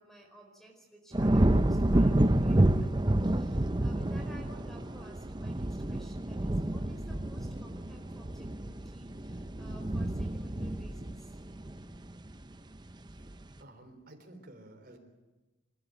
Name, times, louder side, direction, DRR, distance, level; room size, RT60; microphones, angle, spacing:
voice 1, 0.0-11.3, right 1 dB, ahead, 3 dB, 4.6 m, -55 dB
sound 1, 1.1-12.4 12.9-13.3, right 1 dB, 25° right, 0.7 m, -29 dB
voice 2, 13.6-15.0, right 1 dB, 55° right, 4 dB, 4.0 m, -52 dB
28.0 x 13.0 x 9.2 m, 1.2 s
head